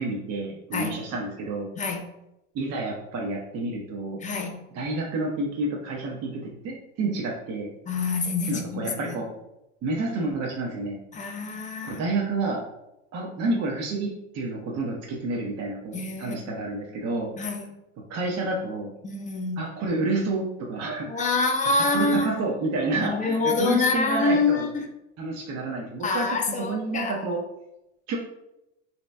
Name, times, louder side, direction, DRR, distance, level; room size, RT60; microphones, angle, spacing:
voice 1, 0.0-1.7 2.5-4.2 4.7-7.7 8.5-9.3 9.8-11.0 11.8-12.6 13.1-17.3 18.1-18.9 19.6-21.5 21.9-24.7 25.2-26.4 26.7-27.4 28.1-28.2, right 2 dB, 45° right, -2 dB, 0.8 m, -29 dB
voice 2, 4.2-4.6 7.9-9.2 11.1-12.0 15.9-16.6 17.4-17.7 19.0-19.6 21.1-22.3 23.0-24.9 26.0-27.1, left 3 dB, 20° left, 2 dB, 0.7 m, -26 dB
3.0 x 2.8 x 3.3 m, 0.89 s
hypercardioid pair, 85°, 36 cm